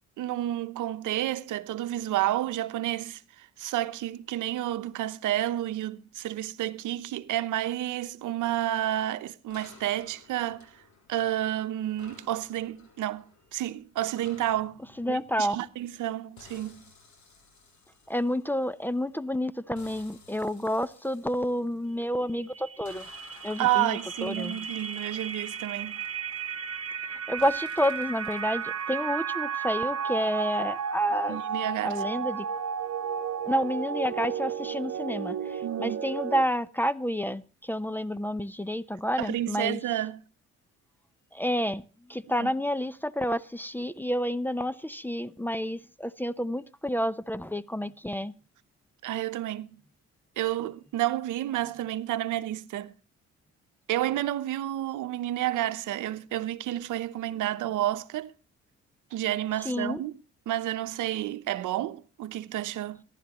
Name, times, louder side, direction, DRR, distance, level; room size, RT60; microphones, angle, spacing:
voice 1, 0.2-10.7 11.1-14.8 15.1-16.8 23.6-26.0 31.3-32.0 35.6-36.0 39.2-40.2 42.3-42.5 49.0-49.8 50.4-52.9 53.9-58.3 59.1-60.2 60.5-63.0, right 13 dB, 80° right, 0.9 m, -30 dB
sound 1, 9.5-11.5 12.0-16.0 16.4-19.1 19.8-22.2 22.9-27.0 27.4-28.9, left 3 dB, 70° left, 6.6 m, -54 dB
voice 2, 15.0-15.6 18.1-23.0 23.4-24.6 27.3-31.4 31.8-32.5 33.4-39.8 41.3-41.8 42.1-48.3 59.6-60.0, equal, 5° left, 0.6 m, -29 dB
sound 2, 22.2-36.4, right 7 dB, 55° right, 1.2 m, -33 dB
26.0 x 11.5 x 3.0 m
cardioid pair, 90°, 30 cm